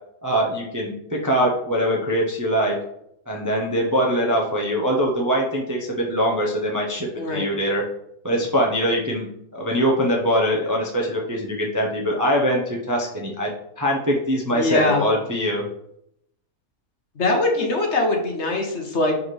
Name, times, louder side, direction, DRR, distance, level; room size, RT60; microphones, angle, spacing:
voice 1, 0.2-2.7 3.3-7.8 8.2-9.3 9.5-13.5 13.8-15.6, equal, 20° right, -1 dB, 0.6 m, -22 dB
voice 2, 14.5-15.0 17.2-19.2, left 2 dB, 55° left, 2 dB, 1.3 m, -22 dB
5.9 x 4.9 x 3.3 m, 0.77 s
omnidirectional pair, 1.5 m